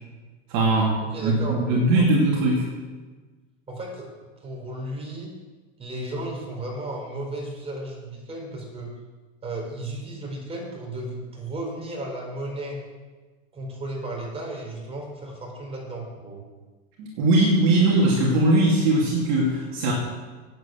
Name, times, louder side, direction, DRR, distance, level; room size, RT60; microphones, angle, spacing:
voice 1, 0.5-2.7 17.0-19.9, right 2 dB, 45° right, -2 dB, 2.6 m, -20 dB
voice 2, 1.0-2.0 3.7-4.1 4.4-5.3 5.8-8.9 9.4-12.8 13.5-16.4, right 1 dB, 15° right, -1 dB, 4.3 m, -34 dB
9.2 x 8.0 x 7.7 m, 1.3 s
hypercardioid pair, 130°, 39 cm